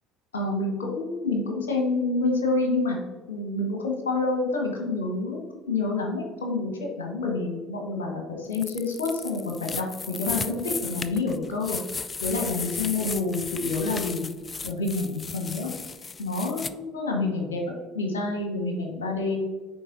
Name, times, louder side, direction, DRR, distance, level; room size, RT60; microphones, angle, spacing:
voice 1, 0.3-3.0 3.3-5.4 5.7-6.7 7.0-11.8 12.2-14.3 14.6-15.7 16.2-17.6 17.9-19.4, left 3 dB, 80° left, 1 dB, 1.2 m, -28 dB
sound 1, 8.5-16.7, left 5 dB, 30° left, 0.3 m, -35 dB
9.3 x 4.1 x 2.6 m, 1.3 s
figure-of-eight pair, 60°, 0 cm